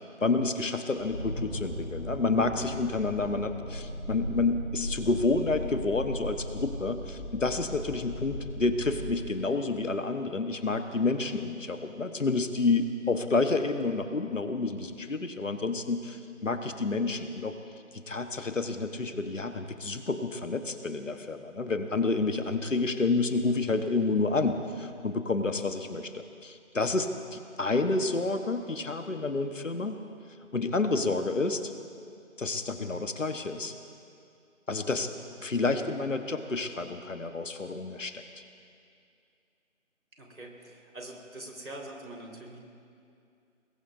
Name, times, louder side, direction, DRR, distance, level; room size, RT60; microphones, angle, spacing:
voice 1, 0.2-17.6 17.9-30.0 30.5-31.7 32.4-33.7 34.7-35.1 35.4-38.2, left 3 dB, 70° left, 8 dB, 1.3 m, -29 dB
sound 1, 0.9-9.2, equal, 5° left, 2.6 m, -38 dB
voice 2, 40.2-42.6, right 1 dB, 85° right, -1 dB, 4.4 m, -44 dB
25.5 x 21.0 x 2.7 m, 2.4 s
figure-of-eight pair, 175°, 40 cm